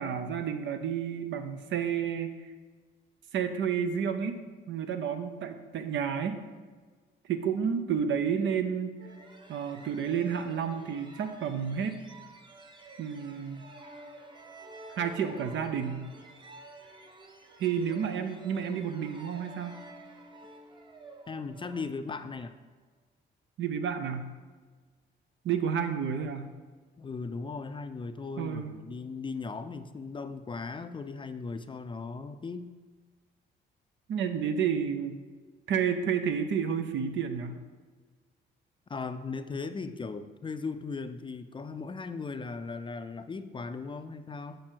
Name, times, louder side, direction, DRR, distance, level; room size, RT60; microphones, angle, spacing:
voice 1, 0.0-2.3 3.3-6.4 7.3-8.9 9.5-12.0 13.0-13.7 15.0-16.1 17.6-19.8 23.6-24.3 25.4-26.5 28.4-28.7 34.1-35.2 35.7-37.6, right 7 dB, 70° right, 8 dB, 0.8 m, -30 dB
sound 1, 9.0-22.5, right 2 dB, 25° right, 0.9 m, -50 dB
voice 2, 21.3-22.5 27.0-32.7 38.9-44.6, left 4 dB, 25° left, 10 dB, 0.4 m, -38 dB
7.4 x 5.1 x 4.5 m, 1.4 s
cardioid pair, 90°, 20 cm